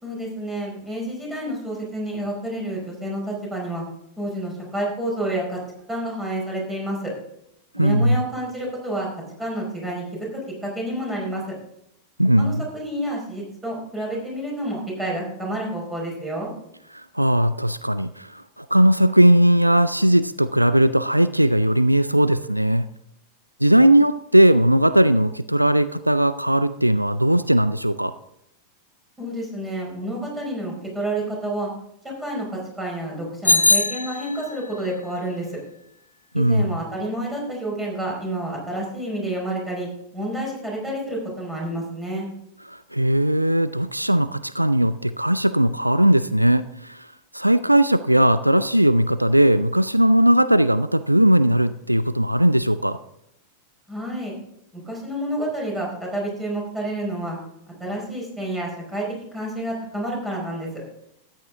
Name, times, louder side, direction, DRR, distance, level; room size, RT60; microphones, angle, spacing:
voice 1, 0.0-3.8 4.2-5.6 5.9-7.1 7.8-9.1 9.4-11.4 12.4-16.5 29.2-31.7 32.2-35.6 36.3-39.9 40.1-42.3 53.9-54.3 54.7-57.4 57.8-59.0 59.3-60.7, right 1 dB, 10° right, -2 dB, 4.8 m, -29 dB
voice 2, 7.7-8.2 12.2-12.7 16.9-22.9 23.6-28.1 36.3-36.7 42.7-47.1 47.3-53.0, right 1 dB, 90° right, 14 dB, 0.3 m, -18 dB
Bicycle bell, 33.4-34.7, left 2 dB, 80° left, 0.4 m, -20 dB
13.5 x 9.0 x 3.7 m, 0.78 s
figure-of-eight pair, 90°, 0 cm